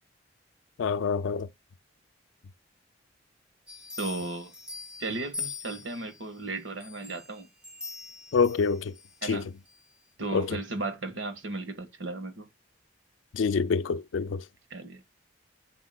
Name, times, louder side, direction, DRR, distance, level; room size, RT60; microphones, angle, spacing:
voice 1, 0.8-1.5 8.3-8.9 9.2-9.4 10.3-10.5 13.3-14.4, left 5 dB, 90° left, 0.4 m, -26 dB
sound 1, 3.7-6.2 6.8-9.2 9.7-9.8, left 5 dB, 5° right, 1.6 m, -42 dB
voice 2, 4.0-4.5 5.0-7.5 9.2-9.5 10.2-12.5 14.7-15.0, right 2 dB, 85° right, 1.6 m, -35 dB
7.8 x 6.0 x 2.3 m
head